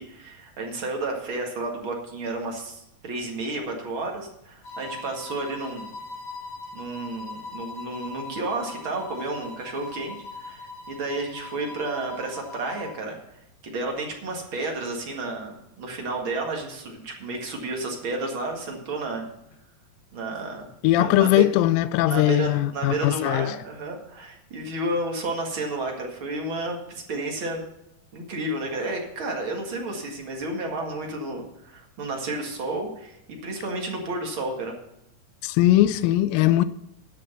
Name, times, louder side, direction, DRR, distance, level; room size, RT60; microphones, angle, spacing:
voice 1, 0.0-5.9 6.7-10.2 10.4-13.2 13.6-19.3 20.1-20.7 21.0-21.5 22.1-27.7 28.1-34.8, right 2 dB, 40° right, 2.3 m, -31 dB
sound 1, 4.6-13.0, left 3 dB, 45° left, 2.8 m, -40 dB
voice 2, 20.8-23.6 35.4-36.6, left 14 dB, 85° left, 2.3 m, -20 dB
11.5 x 6.7 x 6.7 m
omnidirectional pair, 4.0 m